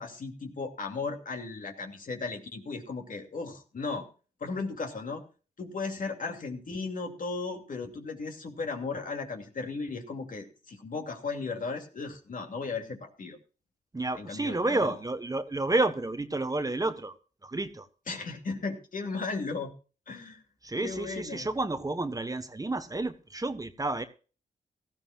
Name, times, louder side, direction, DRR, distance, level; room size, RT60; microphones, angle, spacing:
voice 1, 0.0-4.1 4.4-5.2 5.6-13.4 14.2-15.0 18.1-19.7 20.1-20.4 20.8-21.5, left 4 dB, 55° left, 4 dB, 2.7 m, -36 dB
voice 2, 13.9-17.1 17.4-17.9 20.6-24.0, right 2 dB, 20° right, 10 dB, 1.2 m, -30 dB
17.5 x 14.0 x 2.4 m, 0.36 s
cardioid pair, 60°, 16 cm